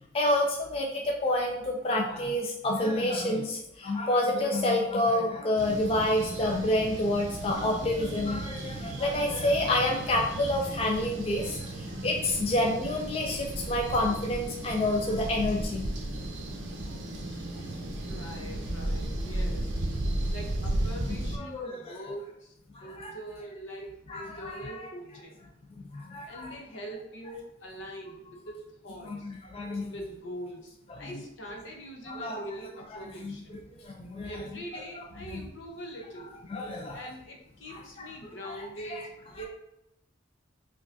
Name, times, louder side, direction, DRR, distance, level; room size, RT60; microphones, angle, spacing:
voice 1, 0.1-15.9 21.3-22.0 22.7-23.2 24.1-24.9 25.9-26.5 29.0-29.9 30.9-31.1 32.1-32.4 33.2-34.3 36.5-37.0 37.7-38.1 38.4-39.0, left 1 dB, 30° left, 0 dB, 0.3 m, -29 dB
sound 1, 5.6-21.4, right 1 dB, 75° right, 0.6 m, -34 dB
voice 2, 17.9-19.7 20.3-22.5 22.8-25.4 26.2-29.3 29.9-33.6 34.2-36.4 36.9-39.5, right 1 dB, 75° left, 0 dB, 0.8 m, -43 dB
4.9 x 2.3 x 2.6 m, 0.83 s
head